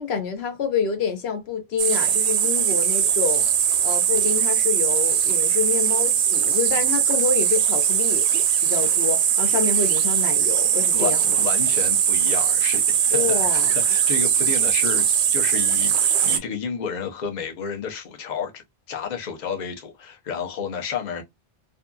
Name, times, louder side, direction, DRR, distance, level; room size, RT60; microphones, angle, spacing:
voice 1, 0.0-3.5 3.8-8.3 8.6-11.4 13.1-13.7, left 6 dB, 75° left, 0.9 m, -27 dB
sound 1, 1.8-16.4, right 8 dB, 90° right, 0.8 m, -20 dB
voice 2, 10.9-15.0 15.3-18.6 18.9-21.2, left 6 dB, 50° left, 0.8 m, -31 dB
2.7 x 2.4 x 2.2 m
omnidirectional pair, 1.1 m